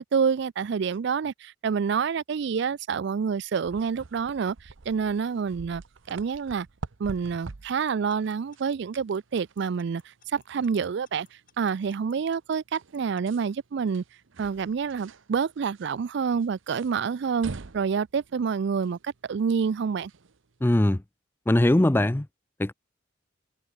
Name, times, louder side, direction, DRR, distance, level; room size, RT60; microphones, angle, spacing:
voice 1, 0.0-4.6 4.9-5.8 6.1-6.7 7.0-10.0 10.3-11.3 11.6-14.0 14.4-20.1, right 6 dB, 60° right, 0.4 m, -27 dB
sound 1, 3.6-21.0, right 3 dB, 80° right, 0.8 m, -47 dB
Alarm / Clock, 7.7-13.2, left 10 dB, 45° left, 3.9 m, -61 dB
voice 2, 20.6-21.0 21.5-22.3 22.6-22.7, left 1 dB, 10° left, 0.4 m, -21 dB
head